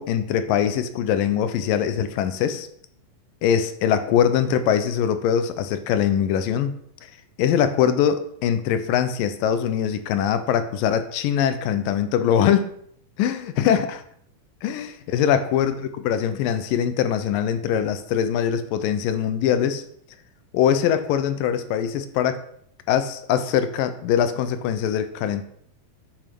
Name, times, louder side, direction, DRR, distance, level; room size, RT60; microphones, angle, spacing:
voice 1, 0.0-2.7 3.4-6.7 7.0-7.1 7.4-12.7 13.2-14.0 14.6-14.9 15.1-19.8 20.5-22.4 22.9-25.4, left 9 dB, 75° left, 11 dB, 2.3 m, -22 dB
9.8 x 7.4 x 5.9 m, 0.67 s
omnidirectional pair, 4.4 m